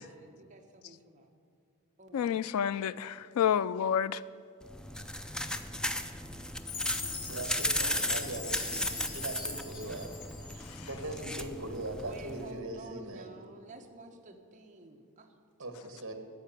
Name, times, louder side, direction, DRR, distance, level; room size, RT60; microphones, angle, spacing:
voice 1, 0.0-1.3 2.0-2.4 12.0-15.3, right 2 dB, 35° right, 1.1 m, -51 dB
voice 2, 2.1-4.2 10.8-10.9, left 8 dB, 80° left, 0.3 m, -29 dB
sound 1, 4.6-12.5, left 1 dB, 5° left, 0.4 m, -36 dB
Chime, 6.7-10.9, left 5 dB, 40° left, 1.2 m, -41 dB
voice 3, 7.3-13.3 15.6-16.1, right 2 dB, 60° right, 1.5 m, -40 dB
12.5 x 5.8 x 9.2 m
head